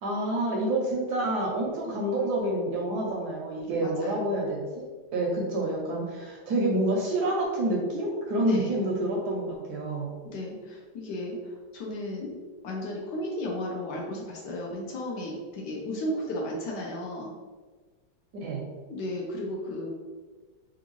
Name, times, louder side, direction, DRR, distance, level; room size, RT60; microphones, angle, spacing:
voice 1, 0.0-4.8 5.1-10.1 18.3-18.6, right 1 dB, 70° right, -1 dB, 1.0 m, -28 dB
voice 2, 3.8-4.1 8.4-8.6 10.2-11.4 11.7-12.4 12.6-17.3 18.9-19.9, left 1 dB, 70° left, -1 dB, 1.1 m, -34 dB
3.5 x 2.5 x 2.9 m, 1.4 s
omnidirectional pair, 2.0 m